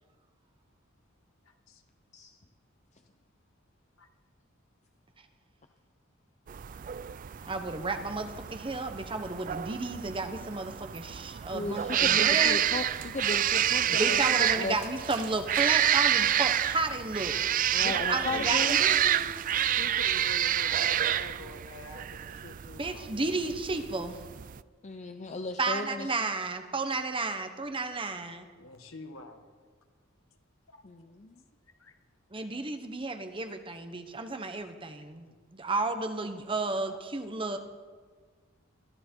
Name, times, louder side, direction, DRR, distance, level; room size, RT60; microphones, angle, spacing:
sound 1, 6.5-24.6, right 10 dB, 40° right, 0.3 m, -28 dB
voice 1, 7.5-12.6 13.9-17.4 17.8-19.3 22.7-24.2 25.6-28.5 32.3-37.6, right 3 dB, 25° right, 7 dB, 1.1 m, -32 dB
voice 2, 11.5-14.8 17.7-18.8 24.8-26.3 30.8-31.4, left 2 dB, 35° left, 6 dB, 0.7 m, -36 dB
voice 3, 13.8-14.2 18.3-18.9 19.3-19.5 19.8-23.7 28.6-29.4 30.7-30.8 31.8-31.9 35.3-35.4 36.6-36.8, left 2 dB, 80° left, 5 dB, 1.8 m, -46 dB
22.0 x 14.0 x 4.6 m, 1.5 s
head